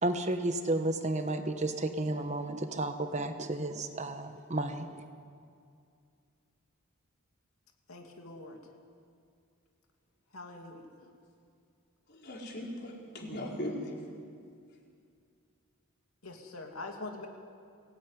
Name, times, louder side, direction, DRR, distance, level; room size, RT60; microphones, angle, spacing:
voice 1, 0.0-4.9, right 2 dB, 35° right, 7 dB, 1.2 m, -32 dB
voice 2, 7.9-8.6 10.3-10.9 16.2-17.3, left 2 dB, 90° left, 2 dB, 2.8 m, -43 dB
voice 3, 12.1-13.9, left 1 dB, 50° left, -2 dB, 4.5 m, -39 dB
22.5 x 17.0 x 9.7 m, 2.3 s
head